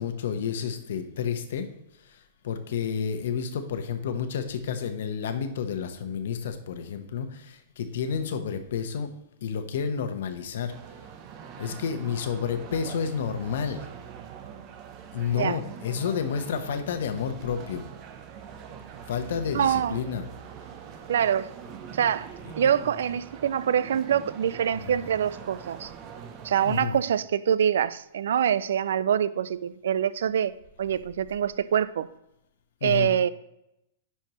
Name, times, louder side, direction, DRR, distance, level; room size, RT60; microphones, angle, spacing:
voice 1, 0.0-1.7 2.1-2.2 2.4-9.1 9.4-10.7 11.6-13.8 15.1-17.8 19.1-20.3 22.4-22.5 24.7-25.0 26.6-27.0 32.8-33.1, left 7 dB, 70° left, 0.9 m, -30 dB
sound 1, 10.7-26.8, right 7 dB, 35° right, 0.7 m, -43 dB
voice 2, 19.5-20.0 21.1-21.5 21.9-25.9 26.4-30.5 30.8-32.1 32.8-33.3, right 9 dB, 80° right, 0.3 m, -25 dB
10.0 x 4.6 x 3.0 m
hypercardioid pair, 145°, 0 cm